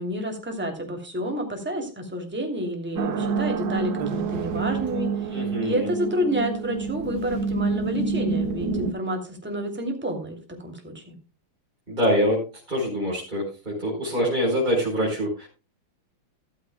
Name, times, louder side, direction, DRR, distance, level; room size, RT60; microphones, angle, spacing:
voice 1, 0.0-11.2, equal, 5° right, 3 dB, 2.7 m, -29 dB
sound 1, 3.0-8.9, right 5 dB, 55° right, 1.3 m, -28 dB
voice 2, 5.3-5.9 11.9-12.4 12.7-15.5, equal, 20° right, -3 dB, 4.7 m, -24 dB
14.5 x 13.5 x 2.2 m, 0.31 s
omnidirectional pair, 2.4 m